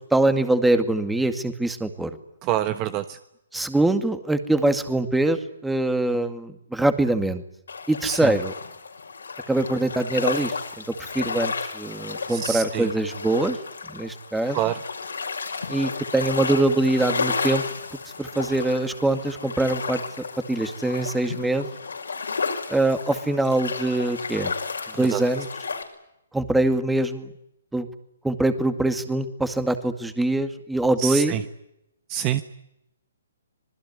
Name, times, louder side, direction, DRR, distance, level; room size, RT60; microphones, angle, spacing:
voice 1, 0.1-2.1 3.5-7.4 7.9-8.5 9.5-13.6 13.9-14.6 15.7-17.6 18.2-20.0 20.5-21.7 22.7-24.5 25.0-25.5 26.3-27.3 27.7-27.9 28.2-31.3, right 2 dB, 5° right, 9 dB, 2.2 m, -23 dB
voice 2, 2.4-3.2 8.0-8.3 12.3-12.9 14.5-14.8 25.1-25.2 31.0-31.4 32.1-32.4, right 12 dB, 30° right, 11 dB, 1.3 m, -26 dB
sound 1, 7.7-25.8, left 5 dB, 85° left, 6.0 m, -32 dB
26.0 x 20.5 x 9.7 m, 0.81 s
hypercardioid pair, 145°, 0 cm